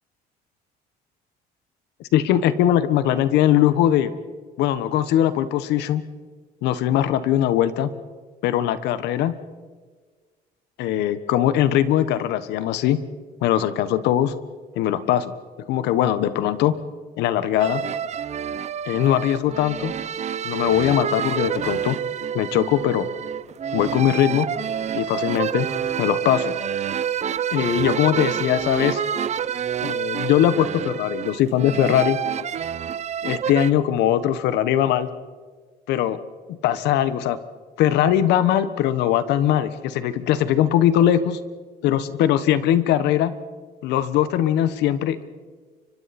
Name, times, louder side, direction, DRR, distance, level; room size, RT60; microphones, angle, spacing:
voice 1, 2.1-4.1 4.6-6.0 6.6-7.9 8.4-9.3 10.8-13.0 13.4-14.3 14.7-15.3 15.7-16.7 17.2-17.8 18.8-19.9 20.4-22.0 22.3-23.1 23.7-24.5 24.9-25.7 26.0-26.6 27.5-29.0 29.8-32.2 33.2-35.1 35.9-36.2 36.6-37.4 37.8-41.4 41.8-43.3 43.8-45.2, left 11 dB, 85° left, 13 dB, 1.3 m, -20 dB
sound 1, 17.6-33.7, right 8 dB, 40° right, 0.8 m, -28 dB
30.0 x 25.0 x 4.3 m, 1.5 s
cardioid pair, 110°, 17 cm